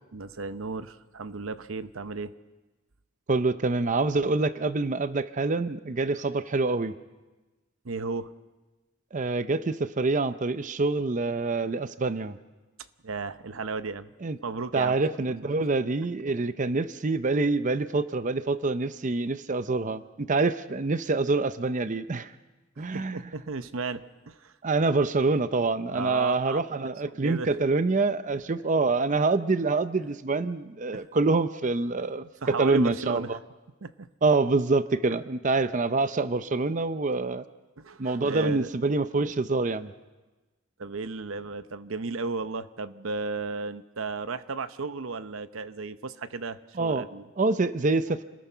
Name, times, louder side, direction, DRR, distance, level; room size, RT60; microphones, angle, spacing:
voice 1, 0.1-2.3 7.8-8.3 13.0-14.1 14.4-15.0 15.6-15.7 22.8-24.5 25.9-26.6 27.0-27.5 30.9-31.1 32.2-33.3 33.8-34.1 37.8-38.7 40.8-47.2, right 4 dB, 90° right, 12 dB, 0.8 m, -34 dB
voice 2, 3.3-6.9 9.1-12.4 14.2-14.4 14.7-22.3 22.8-23.2 24.6-33.4 34.2-37.4 38.0-39.9 46.8-47.1 47.4-48.2, right 3 dB, 40° right, 12 dB, 0.6 m, -26 dB
27.5 x 19.5 x 5.7 m, 1.2 s
head